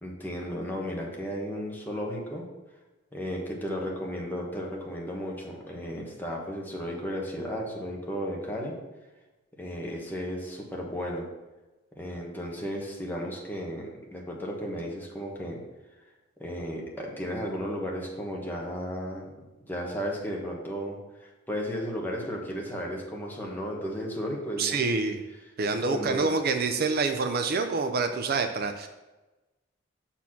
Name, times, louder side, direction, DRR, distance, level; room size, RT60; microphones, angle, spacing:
voice 1, 0.0-2.4 3.1-8.8 9.6-11.3 12.0-15.6 16.4-19.3 19.7-25.1 25.6-26.3, equal, 10° left, -2 dB, 1.4 m, -34 dB
voice 2, 24.6-25.2 25.6-28.9, right 4 dB, 50° right, 7 dB, 0.5 m, -27 dB
7.0 x 4.3 x 5.9 m, 1.1 s
head